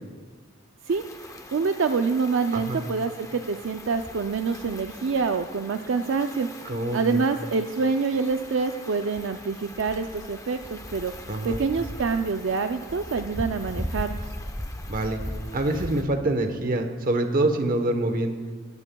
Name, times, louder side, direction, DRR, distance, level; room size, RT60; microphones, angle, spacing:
sound 1, 0.9-16.0, left 1 dB, 15° left, 0.8 m, -39 dB
voice 1, 1.5-6.5 6.9-11.1 11.4-14.3, right 4 dB, 65° right, 7 dB, 0.4 m, -26 dB
voice 2, 6.6-7.2 11.3-11.6 14.9-15.2 15.5-18.4, right 1 dB, 45° right, 7 dB, 1.0 m, -25 dB
18.0 x 14.0 x 2.3 m, 1.5 s
head